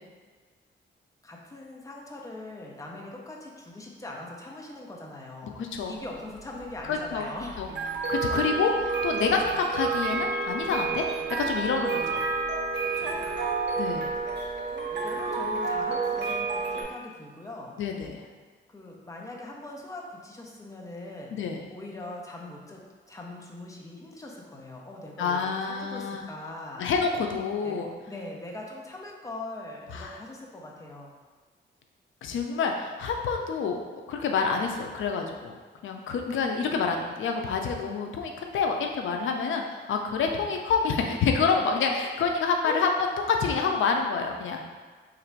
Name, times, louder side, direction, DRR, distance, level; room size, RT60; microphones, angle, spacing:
voice 1, 1.2-5.6 5.9-7.6 12.8-13.4 14.7-17.8 18.7-21.4 21.7-26.8 27.6-31.1 40.3-40.5 42.6-42.8, left 2 dB, 15° left, -1 dB, 0.5 m, -41 dB
voice 2, 5.6-6.0 6.9-7.3 7.6-7.7 8.1-12.3 13.8-14.1 17.8-18.2 21.3-21.6 25.2-26.2 26.8-27.9 29.9-30.2 32.2-33.8 34.1-35.5 35.8-42.9 43.3-44.6, left 5 dB, 90° left, 3 dB, 0.4 m, -27 dB
sound 1, 5.8-16.8, right 4 dB, 65° right, 0.7 m, -30 dB
3.1 x 2.5 x 4.4 m, 1.5 s
wide cardioid pair, 175°, 20 cm